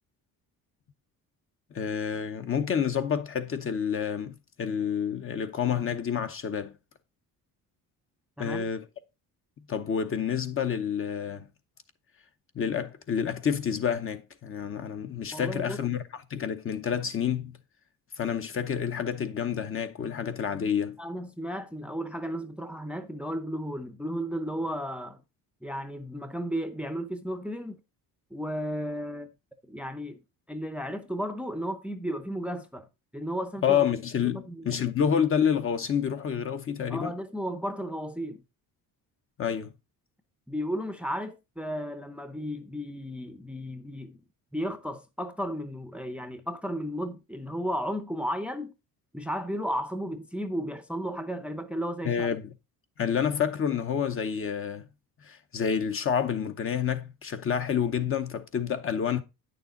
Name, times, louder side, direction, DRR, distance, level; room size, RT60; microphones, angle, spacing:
voice 1, 1.7-6.7 8.4-8.8 9.7-11.5 12.5-17.6 18.2-21.0 33.6-37.1 39.4-39.7 52.0-52.5 53.0-54.9 55.2-59.2, left 8 dB, 35° left, 0.8 m, -28 dB
voice 2, 15.3-15.8 21.0-25.2 25.6-27.8 28.3-29.3 29.7-30.2 30.5-32.9 33.1-33.8 34.2-34.8 36.9-38.4 40.5-44.2 44.5-48.7 49.1-52.3, equal, 5° right, 0.6 m, -34 dB
9.0 x 6.7 x 3.8 m
cardioid pair, 145°, 36 cm